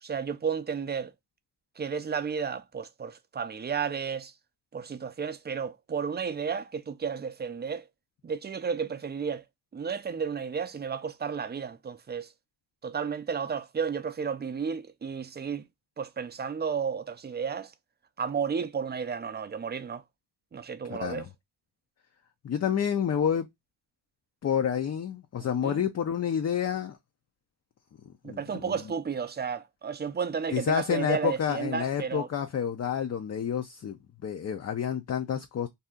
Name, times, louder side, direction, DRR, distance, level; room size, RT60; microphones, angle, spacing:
voice 1, 0.0-1.1 1.8-4.3 4.7-7.9 8.2-9.4 9.7-12.3 12.8-15.7 16.0-17.7 18.2-20.0 20.5-21.3 25.4-25.8 28.2-32.3, right 6 dB, 25° right, 0.4 m, -32 dB
voice 2, 20.9-21.3 22.4-23.5 24.4-27.0 28.3-28.8 30.5-34.0 34.2-35.7, left 8 dB, 40° left, 0.4 m, -29 dB
2.7 x 2.3 x 3.5 m
cardioid pair, 95°, 41 cm